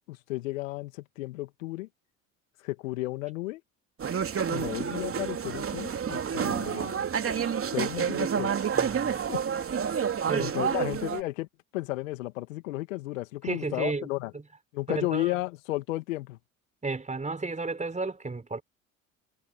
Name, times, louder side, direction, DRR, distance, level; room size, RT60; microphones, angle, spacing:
voice 1, 0.1-1.9 2.6-3.6 4.5-7.0 7.7-8.5 9.1-9.4 10.4-11.5 11.7-14.3 14.7-16.4, left 19 dB, 75° left, 2.6 m, -33 dB
sound 1, 4.0-11.2, right 7 dB, 35° right, 2.9 m, -29 dB
voice 2, 8.7-9.3 10.3-10.5 13.4-14.1 14.3-14.4 14.9-15.4 16.8-18.6, right 3 dB, 20° right, 4.3 m, -33 dB
figure-of-eight pair, 60°, 40 cm